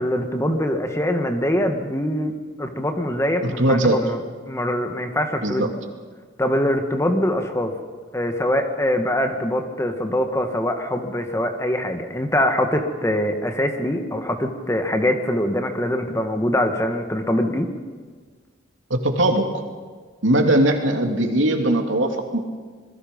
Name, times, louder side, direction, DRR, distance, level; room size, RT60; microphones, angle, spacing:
voice 1, 0.0-2.3 2.6-5.7 6.4-7.7 8.1-17.7, left 1 dB, 15° left, 5 dB, 1.7 m, -23 dB
voice 2, 3.4-4.0 5.4-5.7 18.9-19.5 20.2-22.4, right 1 dB, 80° right, 3 dB, 2.8 m, -20 dB
27.0 x 21.5 x 5.4 m, 1.5 s
head